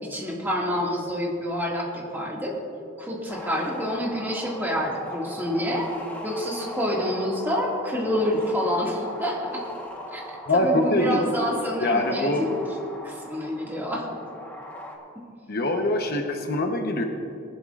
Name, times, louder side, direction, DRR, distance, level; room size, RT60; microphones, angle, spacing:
voice 1, 0.0-2.5 3.0-5.9 6.2-9.6 10.1-10.2 10.5-12.6 13.0-14.1, equal, 10° right, -3 dB, 2.0 m, -27 dB
sound 1, 3.3-15.0, left 1 dB, 10° left, 1.2 m, -39 dB
voice 2, 10.5-11.3 11.8-12.4 15.5-17.0, left 1 dB, 55° left, 4 dB, 0.9 m, -23 dB
20.0 x 11.5 x 2.5 m, 2.6 s
head